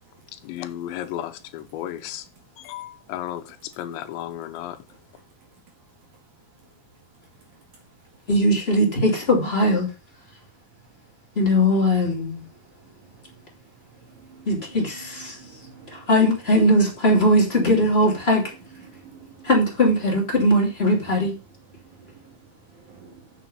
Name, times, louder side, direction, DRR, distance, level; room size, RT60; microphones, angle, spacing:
voice 1, 0.4-2.3 2.6-4.8, left 12 dB, 90° left, 3.1 m, -34 dB
voice 2, 8.3-9.9 11.4-12.4 14.5-15.4 15.9-18.4 19.4-21.3, equal, 20° left, 2.2 m, -20 dB
voice 3, 15.0-15.9 18.9-19.5 22.0-22.1 22.9-23.2, right 5 dB, 50° right, 2.9 m, -47 dB
7.5 x 7.3 x 5.4 m
omnidirectional pair, 5.0 m